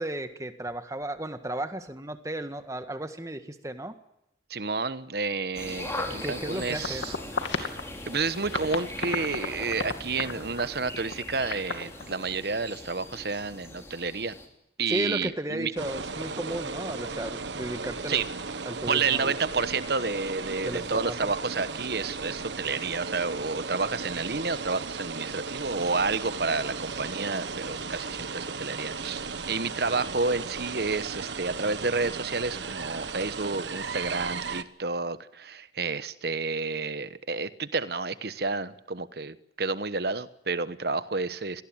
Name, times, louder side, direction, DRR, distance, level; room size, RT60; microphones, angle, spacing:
voice 1, 0.0-3.9 6.0-7.1 14.9-18.2 18.6-19.3 20.6-21.1, right 1 dB, 15° right, 9 dB, 1.6 m, -34 dB
voice 2, 4.5-7.1 7.6-7.7 8.1-14.3 14.8-15.7 18.1-18.3 18.9-41.6, right 4 dB, 55° right, 14 dB, 1.1 m, -30 dB
sound 1, 5.5-14.5, left 1 dB, 15° left, 3.5 m, -40 dB
sound 2, 6.4-8.2 8.5-12.1, left 3 dB, 85° left, 2.5 m, -34 dB
sound 3, 15.8-34.6, right 4 dB, 75° right, 1.3 m, -36 dB
24.5 x 18.5 x 8.9 m, 0.85 s
head